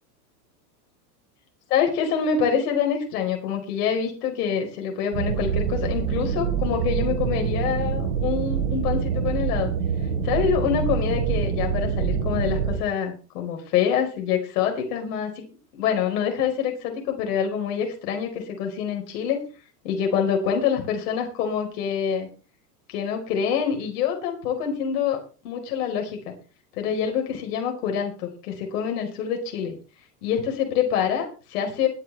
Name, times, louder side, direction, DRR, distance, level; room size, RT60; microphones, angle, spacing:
voice 1, 1.7-9.7 10.2-15.5 15.8-19.4 19.8-22.3 22.9-26.3 26.8-29.7 30.2-31.9, left 7 dB, 65° left, 3 dB, 4.9 m, -26 dB
sound 1, 5.1-12.8, right 7 dB, 90° right, 4.7 m, -25 dB
21.0 x 9.2 x 3.5 m, 0.37 s
supercardioid pair, 130°, 49 cm